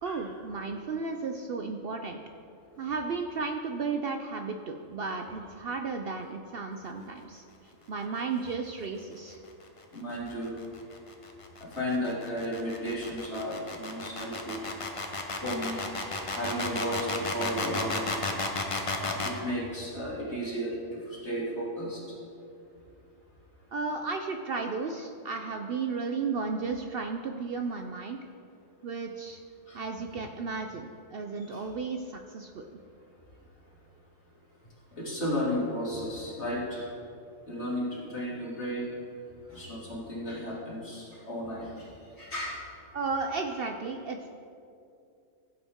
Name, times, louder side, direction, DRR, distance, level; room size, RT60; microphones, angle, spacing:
voice 1, 0.0-2.2 2.8-7.4 7.9-9.4 23.7-28.2 28.8-29.4 29.7-32.8 42.9-44.3, right 4 dB, 60° right, 4 dB, 0.7 m, -34 dB
voice 2, 9.9-10.5 11.7-14.6 15.4-15.8 16.4-18.1 18.9-22.0 29.7-29.8 31.5-31.6 35.0-36.9 37.5-39.0 39.5-41.9 42.2-42.6, equal, 55° left, -6 dB, 3.0 m, -33 dB
sound 1, 10.1-19.4, left 3 dB, 30° left, 0.9 m, -33 dB
15.5 x 8.2 x 3.6 m, 2.5 s
omnidirectional pair, 1.4 m